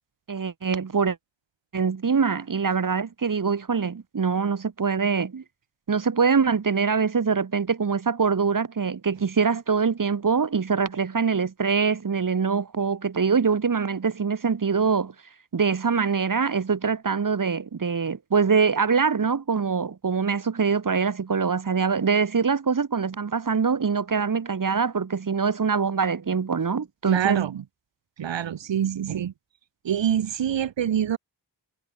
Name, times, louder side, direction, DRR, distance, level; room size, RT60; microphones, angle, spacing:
voice 1, 0.3-1.2 1.7-5.4 5.9-15.1 15.5-27.4, right 5 dB, 45° right, 2.1 m, -24 dB
voice 2, 27.1-27.6 28.2-29.3 29.8-31.2, right 9 dB, 70° right, 1.2 m, -25 dB
wide cardioid pair, 160°, 46 cm